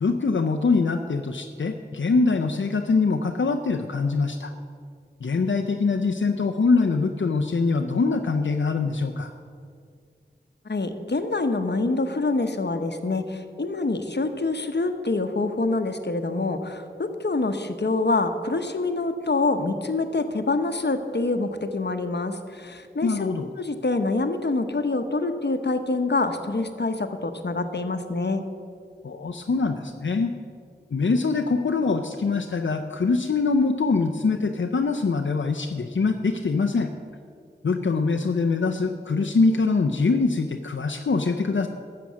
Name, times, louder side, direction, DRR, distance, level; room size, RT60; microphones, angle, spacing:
voice 1, 0.0-4.5 5.2-9.3 23.0-23.5 29.0-30.3 30.9-36.9 37.6-41.7, left 4 dB, 85° left, 4 dB, 0.5 m, -23 dB
voice 2, 10.6-23.3 23.6-28.4, left 3 dB, 65° left, 8 dB, 0.9 m, -26 dB
12.5 x 7.6 x 6.2 m, 2.2 s
wide cardioid pair, 45°, 19 cm